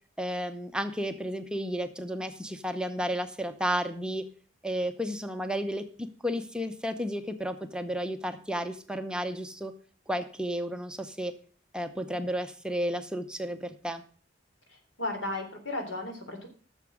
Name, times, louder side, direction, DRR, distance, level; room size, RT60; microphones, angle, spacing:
voice 1, 0.2-4.2 4.6-9.7 10.1-11.3 11.7-14.0, equal, 5° right, 7 dB, 0.7 m, -32 dB
voice 2, 15.0-16.5, left 2 dB, 80° left, 4 dB, 3.4 m, -34 dB
12.0 x 7.0 x 6.2 m, 0.42 s
head